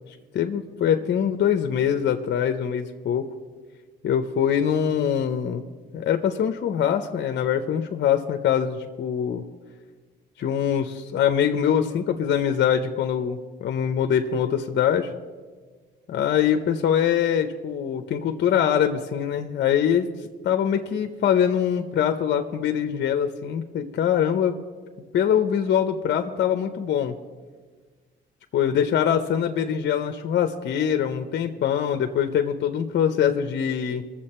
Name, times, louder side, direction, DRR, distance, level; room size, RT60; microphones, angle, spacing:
voice 1, 0.3-3.3 4.0-5.6 5.9-9.4 10.4-15.1 16.1-20.1 20.4-24.5 25.1-27.1 28.5-34.0, left 8 dB, 60° left, 6 dB, 0.8 m, -23 dB
21.5 x 7.4 x 4.3 m, 1.4 s
cardioid pair, 90°, 20 cm